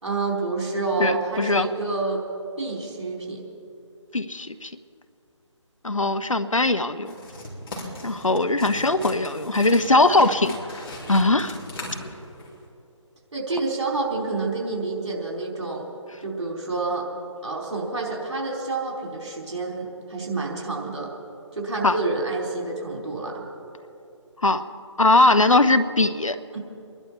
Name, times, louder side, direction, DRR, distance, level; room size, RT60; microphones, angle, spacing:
voice 1, 0.0-2.2 2.6-3.4 13.3-15.9 16.2-17.1 17.4-21.1 21.5-23.4 26.5-26.6, right 3 dB, 60° right, -2 dB, 4.4 m, -28 dB
voice 2, 1.0-1.7 4.1-4.7 5.8-7.1 8.0-10.6 11.1-11.6 21.8-22.0 24.4-24.6 25.0-26.4, left 2 dB, 85° left, 11 dB, 0.9 m, -20 dB
sound 1, 7.0-12.6, left 1 dB, 50° left, 3.8 m, -38 dB
25.5 x 11.0 x 4.5 m, 2.7 s
figure-of-eight pair, 150°, 16 cm